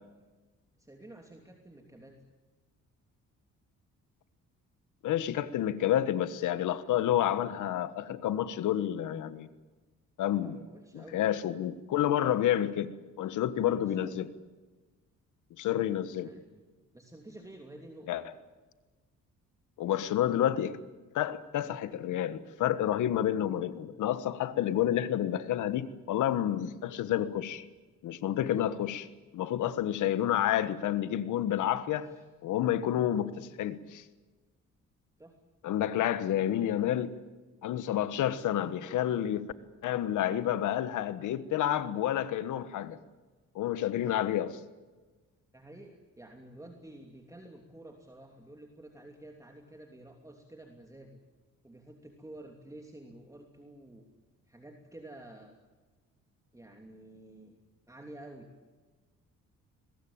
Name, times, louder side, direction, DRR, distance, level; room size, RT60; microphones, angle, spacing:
voice 1, 0.8-2.2 10.3-11.2 13.6-14.2 16.1-18.1 28.5-28.7 31.8-32.2 32.9-33.1 35.2-35.3 45.5-51.2 51.6-54.0 54.5-55.5 56.5-57.6 57.9-58.5, right 1 dB, 10° right, 2.9 m, -50 dB
voice 2, 5.0-9.5 10.2-10.6 10.9-12.9 13.2-14.3 15.6-16.3 18.1-18.3 19.8-20.8 21.1-27.6 28.0-29.0 29.3-32.1 32.4-34.0 35.6-37.2 37.6-39.5 39.8-43.0 43.5-44.6, left 11 dB, 80° left, 1.4 m, -29 dB
23.0 x 20.5 x 8.8 m
cardioid pair, 90°, 30 cm